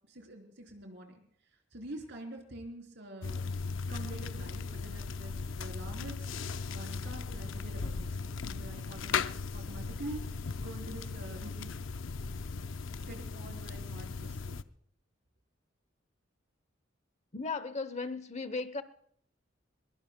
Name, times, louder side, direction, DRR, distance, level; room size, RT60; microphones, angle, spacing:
voice 1, 0.1-1.2 1.7-3.4 3.9-11.8 13.0-14.6, right 1 dB, 65° right, 3 dB, 3.6 m, -46 dB
sound 1, 3.2-14.6, left 4 dB, 80° left, 0.6 m, -37 dB
voice 2, 17.3-18.8, left 4 dB, 35° left, 13 dB, 0.8 m, -36 dB
22.0 x 21.5 x 2.2 m, 0.63 s
head